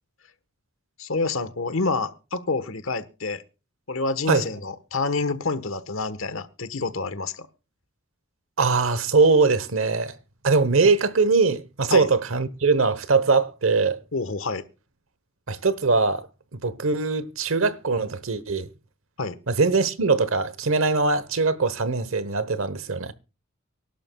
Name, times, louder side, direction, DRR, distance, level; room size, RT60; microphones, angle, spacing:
voice 1, 1.0-3.4 3.9-7.5 11.9-12.1 14.1-14.6 19.2-19.4, left 3 dB, 70° left, 1.2 m, -28 dB
voice 2, 8.6-10.1 10.4-14.0 15.5-16.3 16.6-18.7 19.5-23.1, right 4 dB, 70° right, 1.0 m, -21 dB
24.5 x 11.5 x 2.3 m
head